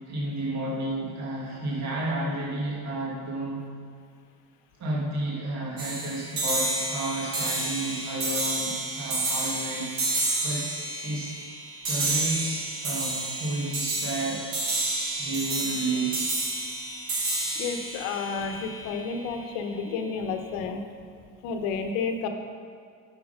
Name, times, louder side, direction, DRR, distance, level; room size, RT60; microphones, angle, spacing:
voice 1, 0.1-3.7 4.8-10.7 11.0-11.4 11.8-14.5 15.2-16.3, right 1 dB, 45° right, -4 dB, 1.8 m, -31 dB
sound 1, 5.8-19.2, right 2 dB, 65° right, 2.3 m, -30 dB
voice 2, 17.6-20.8 21.4-22.3, left 5 dB, 85° left, 6 dB, 0.9 m, -31 dB
8.2 x 5.9 x 5.1 m, 2.2 s
cardioid pair, 110°, 37 cm